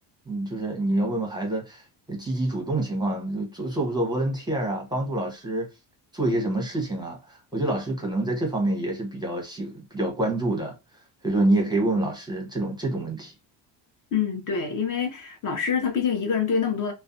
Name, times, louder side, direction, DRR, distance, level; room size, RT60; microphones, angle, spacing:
voice 1, 0.3-5.7 6.1-10.7 11.2-13.3, right 2 dB, 10° right, 0.7 m, -27 dB
voice 2, 14.1-16.9, left 6 dB, 45° left, 0.7 m, -26 dB
2.4 x 2.2 x 2.5 m
cardioid pair, 120°, 46 cm